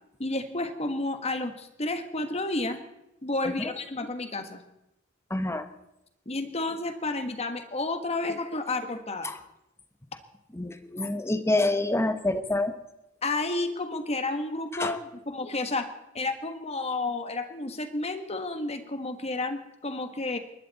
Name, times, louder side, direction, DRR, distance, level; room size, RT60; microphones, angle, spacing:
voice 1, 0.2-2.8 3.2-4.6 6.2-9.3 13.2-15.9 16.1-20.4, left 2 dB, 30° left, 8 dB, 1.4 m, -31 dB
voice 2, 5.3-5.7 9.2-9.4 10.5-12.7 14.7-15.0, left 2 dB, 15° left, 10 dB, 1.0 m, -27 dB
29.5 x 12.0 x 4.1 m, 0.89 s
head